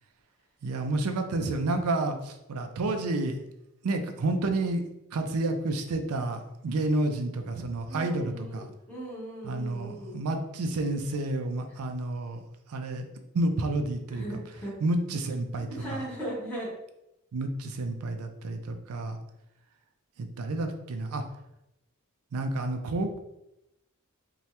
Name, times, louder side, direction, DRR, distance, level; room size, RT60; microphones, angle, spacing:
voice 1, 0.6-3.4 3.8-4.8 5.1-8.7 9.4-12.4 12.7-13.0 13.3-14.2 14.8-16.0 17.3-19.2 20.2-21.2 22.3-23.2, right 2 dB, 80° right, 6 dB, 0.4 m, -30 dB
voice 2, 7.9-10.2 14.1-14.8 15.7-16.7, right 1 dB, 5° left, -8 dB, 1.1 m, -38 dB
2.8 x 2.3 x 3.1 m, 0.87 s
head